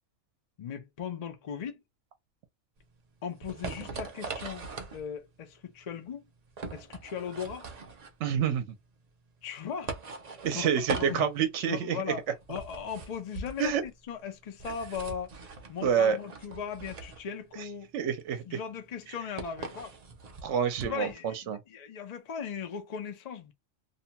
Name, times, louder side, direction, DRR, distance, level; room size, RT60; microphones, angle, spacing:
voice 1, 0.6-1.8 3.2-4.7 4.9-6.2 6.7-7.7 9.4-9.9 10.6-11.3 11.7-15.3 15.7-17.9 18.4-19.9 20.8-23.5, left 7 dB, 55° left, 0.4 m, -38 dB
sound 1, 2.8-21.1, right 4 dB, 50° right, 0.5 m, -41 dB
voice 2, 8.2-8.7 10.4-12.0 13.6-13.8 15.8-16.2 17.9-18.6 20.4-21.6, right 8 dB, 70° right, 0.9 m, -27 dB
2.7 x 2.1 x 2.7 m
omnidirectional pair, 1.3 m